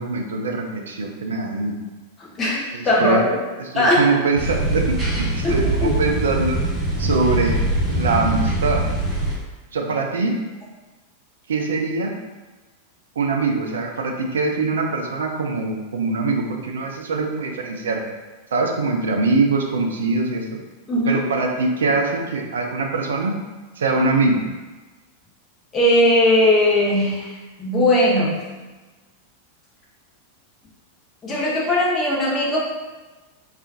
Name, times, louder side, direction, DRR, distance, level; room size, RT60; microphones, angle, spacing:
voice 1, 0.0-1.8 2.7-3.2 3.6-6.6 7.0-7.6 7.9-8.8 9.7-10.4 11.5-12.1 13.2-18.0 18.5-20.5 21.1-23.3 23.8-24.4, right 3 dB, 65° right, 2 dB, 0.4 m, -23 dB
voice 2, 2.4-3.3 3.7-4.0 5.4-5.9 20.9-21.2 25.7-27.3 27.6-28.4 31.2-32.6, left 1 dB, 20° left, -5 dB, 0.9 m, -18 dB
sound 1, 4.4-9.3, right 1 dB, 15° right, 1.0 m, -23 dB
3.6 x 2.4 x 2.7 m, 1.2 s
figure-of-eight pair, 90°, 0 cm